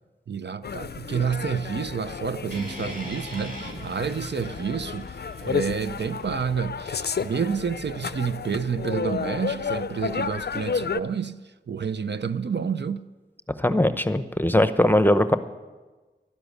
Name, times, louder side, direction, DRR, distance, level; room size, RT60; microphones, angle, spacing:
voice 1, 0.3-13.1, right 6 dB, 65° right, 0.5 m, -29 dB
sound 1, 0.6-11.0, left 6 dB, 60° left, 0.5 m, -32 dB
sound 2, 2.5-6.7, right 1 dB, 45° right, 2.6 m, -42 dB
voice 2, 13.6-15.4, left 1 dB, 10° left, 0.8 m, -20 dB
12.5 x 10.0 x 8.2 m
wide cardioid pair, 55°, 19 cm